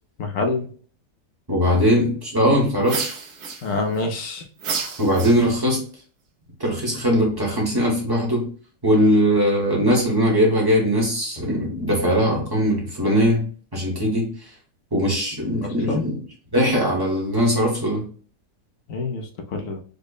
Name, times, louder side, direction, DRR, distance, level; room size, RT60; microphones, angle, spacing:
voice 1, 0.2-0.7 3.6-4.4 14.9-15.0 15.6-16.1 18.9-19.8, left 3 dB, 65° left, 4 dB, 0.8 m, -27 dB
voice 2, 1.5-3.1 5.0-5.8 6.6-8.5 8.8-14.5 14.9-16.2 16.5-18.1, equal, 20° right, -3 dB, 0.7 m, -20 dB
sound 1, 2.8-4.0 4.6-5.8, right 5 dB, 65° right, 1.2 m, -30 dB
5.1 x 2.1 x 2.3 m, 0.42 s
omnidirectional pair, 1.9 m